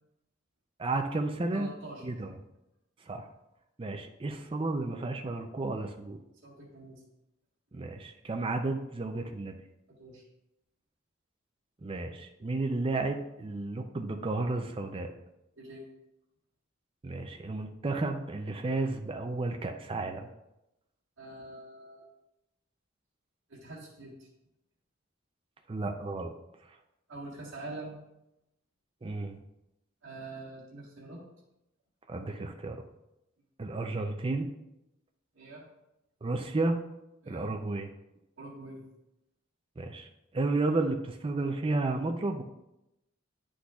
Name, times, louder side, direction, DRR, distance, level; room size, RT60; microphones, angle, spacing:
voice 1, 0.8-1.7 2.0-2.3 3.1-3.3 3.8-6.2 7.7-9.6 11.8-15.1 17.0-20.3 25.7-26.3 29.0-29.4 32.1-32.8 33.6-34.5 36.2-36.8 37.3-37.9 39.8-40.1 40.3-42.4, right 2 dB, 25° right, 4 dB, 0.4 m, -32 dB
voice 2, 1.5-2.1 6.4-7.0 9.9-10.2 15.6-15.9 21.2-22.1 23.5-24.3 27.1-28.0 30.0-31.2 35.3-35.6 37.2-37.5 38.4-38.8, right 2 dB, 80° right, -6 dB, 1.6 m, -45 dB
9.6 x 6.3 x 2.4 m, 0.90 s
head